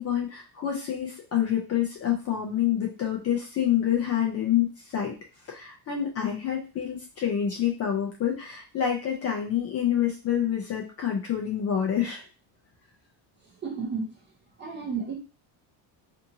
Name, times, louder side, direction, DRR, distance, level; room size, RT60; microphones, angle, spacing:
voice 1, 0.0-5.2 5.5-12.3, left 10 dB, 35° left, -1 dB, 0.4 m, -27 dB
voice 2, 13.6-14.1 14.6-15.1, right 5 dB, 25° right, -2 dB, 0.5 m, -32 dB
2.7 x 2.6 x 2.7 m, 0.33 s
cardioid pair, 165°, 48 cm